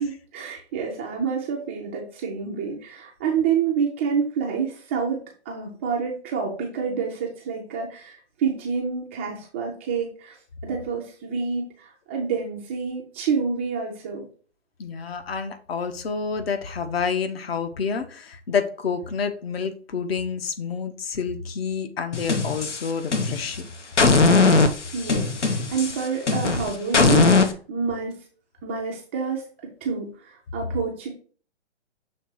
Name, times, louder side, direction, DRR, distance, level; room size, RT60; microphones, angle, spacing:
voice 1, 0.0-10.4 10.6-14.3 24.9-28.2 28.6-29.5 29.8-31.1, right 6 dB, 10° right, -2 dB, 0.4 m, -28 dB
voice 2, 14.8-23.7, left 6 dB, 60° left, 8 dB, 1.1 m, -28 dB
sound 1, 22.1-23.6 24.0-27.5, left 3 dB, 90° left, 1.0 m, -19 dB
6.6 x 3.2 x 4.5 m, 0.42 s
hypercardioid pair, 135°, 34 cm